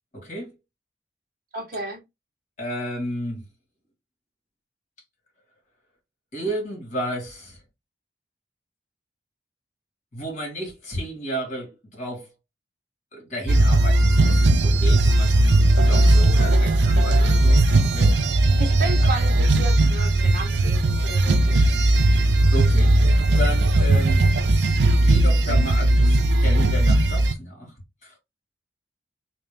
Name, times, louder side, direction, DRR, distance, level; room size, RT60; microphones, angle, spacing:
voice 1, 0.1-0.5 2.6-3.4 6.3-7.6 10.1-12.3 13.1-18.6 22.5-23.0 23.3-24.3 24.9-27.7 28.0-28.2, equal, 40° left, 1.8 m, -33 dB
voice 2, 1.5-2.0 18.6-21.7, right 3 dB, 55° right, 1.4 m, -33 dB
sound 1, 13.5-27.3, right 1 dB, 80° right, 0.5 m, -18 dB
3.2 x 2.9 x 3.4 m
head